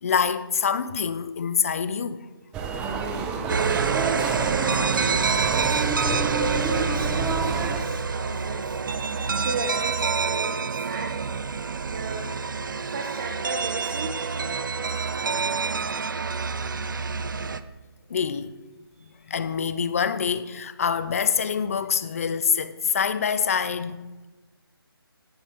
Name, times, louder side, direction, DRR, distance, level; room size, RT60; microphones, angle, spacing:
voice 1, 0.0-2.3 6.0-6.3 16.0-16.1 18.1-18.5 19.0-24.0, left 7 dB, 35° left, 0.8 m, -26 dB
sound 1, 2.5-7.8, right 5 dB, 5° right, 0.6 m, -29 dB
sound 2, 3.5-17.6, right 5 dB, 55° right, 0.7 m, -27 dB
voice 2, 6.1-8.7 9.4-11.1 11.6-12.4 12.7-14.1, right 3 dB, 30° right, 1.2 m, -35 dB
18.0 x 7.0 x 5.9 m
figure-of-eight pair, 155°, 13 cm